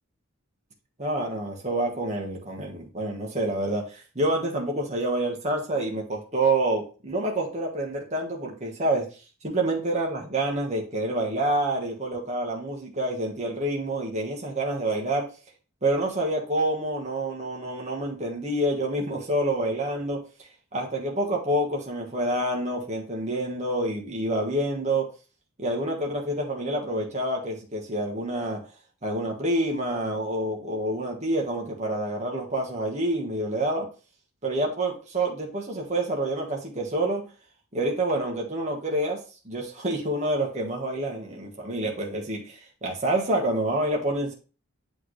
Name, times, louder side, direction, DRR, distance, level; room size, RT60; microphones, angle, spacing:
voice 1, 1.0-9.0 9.4-15.3 15.8-20.2 20.7-25.1 25.6-28.6 29.0-33.9 34.4-37.2 37.7-44.3, right 1 dB, 30° right, -1 dB, 1.4 m, -27 dB
8.4 x 3.5 x 3.1 m, 0.34 s
head